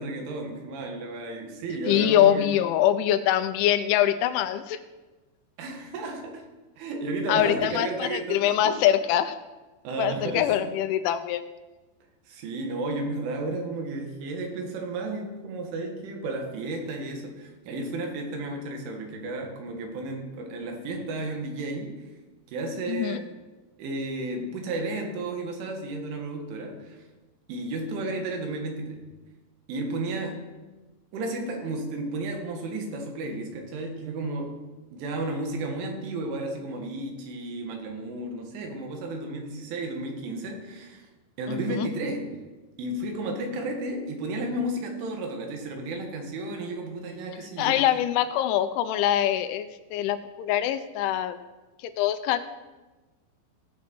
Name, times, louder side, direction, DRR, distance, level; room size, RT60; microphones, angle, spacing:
voice 1, 0.0-2.5 5.6-6.5 6.8-8.8 9.8-10.5 12.3-22.1 22.5-23.3 23.8-27.0 27.5-29.0 29.7-30.4 31.1-34.6 34.9-41.1 41.4-42.4 42.8-47.8, right 2 dB, 80° right, 2 dB, 4.1 m, -33 dB
voice 2, 1.9-4.8 7.3-9.4 10.0-11.4 22.9-23.2 41.5-41.9 47.6-51.4 52.0-52.5, left 11 dB, 85° left, 10 dB, 3.0 m, -24 dB
17.5 x 7.3 x 4.5 m, 1.2 s
omnidirectional pair, 5.5 m